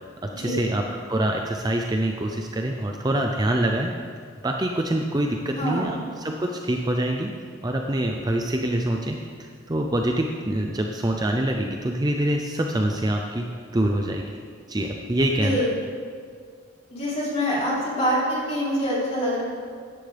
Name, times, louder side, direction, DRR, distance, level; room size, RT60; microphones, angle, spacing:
voice 1, 0.2-3.9 4.4-7.3 7.6-14.3 14.7-15.7, right 1 dB, 20° right, 2 dB, 0.5 m, -25 dB
voice 2, 5.5-6.0 15.4-15.7 16.9-19.4, equal, 30° left, -7 dB, 3.4 m, -25 dB
15.5 x 10.5 x 3.4 m, 2.1 s
head